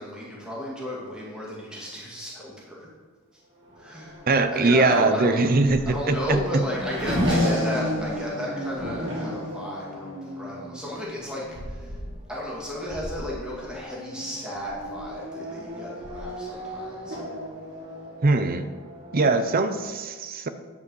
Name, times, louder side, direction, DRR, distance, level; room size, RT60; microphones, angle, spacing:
voice 1, 0.0-2.9 3.8-4.2 4.5-5.5 5.9-12.0 12.3-17.2, left 1 dB, 5° right, -6 dB, 2.2 m, -33 dB
Race car auto racing / Accelerating revving vroom, 3.6-19.8, equal, 60° right, 3.1 m, -33 dB
voice 2, 4.3-6.6 18.2-18.7 19.1-20.5, right 3 dB, 45° right, 10 dB, 0.6 m, -21 dB
9.8 x 5.2 x 6.3 m, 1.5 s
head